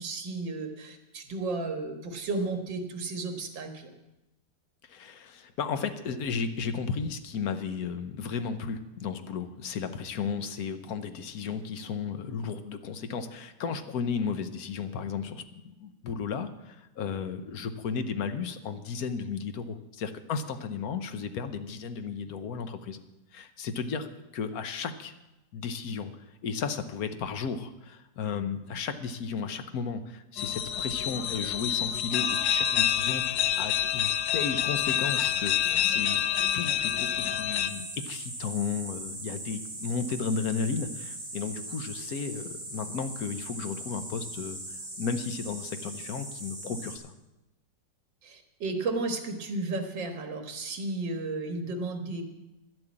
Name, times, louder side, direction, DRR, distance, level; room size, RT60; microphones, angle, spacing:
voice 1, 0.0-3.9 48.2-52.2, right 3 dB, 80° right, 5 dB, 2.2 m, -33 dB
voice 2, 4.8-23.0 23.3-24.1 24.3-25.1 25.5-26.1 26.4-36.2 36.5-47.1, left 5 dB, 60° left, 9 dB, 1.3 m, -34 dB
sound 1, 30.4-37.7, left 10 dB, 80° left, 1.4 m, -27 dB
sound 2, 37.7-47.0, right 1 dB, 25° right, 3.1 m, -40 dB
11.5 x 7.8 x 8.6 m, 0.98 s
omnidirectional pair, 2.0 m